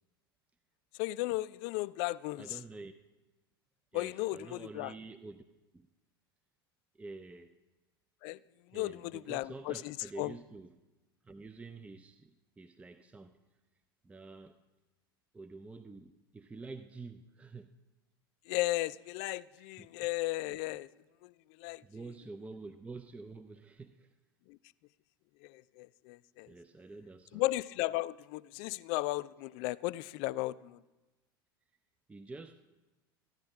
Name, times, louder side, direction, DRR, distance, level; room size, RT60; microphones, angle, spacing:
voice 1, 1.0-2.6 3.9-4.9 8.2-8.4 8.7-10.4 18.5-20.9 21.2-21.8 24.5-24.6 25.4-26.5 27.3-30.8, left 18 dB, 50° left, 0.4 m, -35 dB
voice 2, 2.4-2.9 3.9-5.4 5.7-5.9 7.0-7.5 8.7-10.8 11.2-12.3 12.6-13.4 14.0-14.6 15.3-17.7 19.6-19.9 20.6-20.7 21.8-24.1 26.5-27.5 32.1-32.6, right 3 dB, 10° right, 0.5 m, -48 dB
14.5 x 10.5 x 4.9 m
figure-of-eight pair, 80°, 12 cm